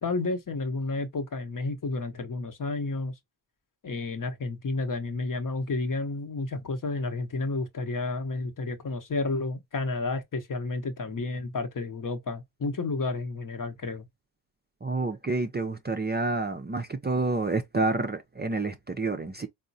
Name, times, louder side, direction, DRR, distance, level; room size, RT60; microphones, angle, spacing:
voice 1, 0.0-3.1 3.8-14.0, left 3 dB, 45° left, 0.9 m, -31 dB
voice 2, 14.8-19.5, right 3 dB, 20° right, 0.5 m, -29 dB
3.6 x 2.1 x 2.6 m
cardioid pair, 55°, 47 cm